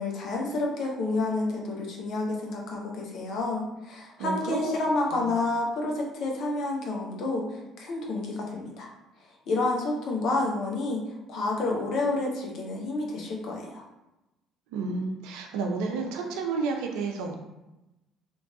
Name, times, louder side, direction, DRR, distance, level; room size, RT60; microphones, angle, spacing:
voice 1, 0.0-8.9 9.5-11.0 11.3-13.8, left 2 dB, 60° left, -1 dB, 0.7 m, -29 dB
voice 2, 4.2-4.7 5.1-5.2 14.7-17.4, right 4 dB, 70° right, 3 dB, 0.4 m, -31 dB
3.0 x 2.5 x 2.3 m, 0.96 s
hypercardioid pair, 55°, 0 cm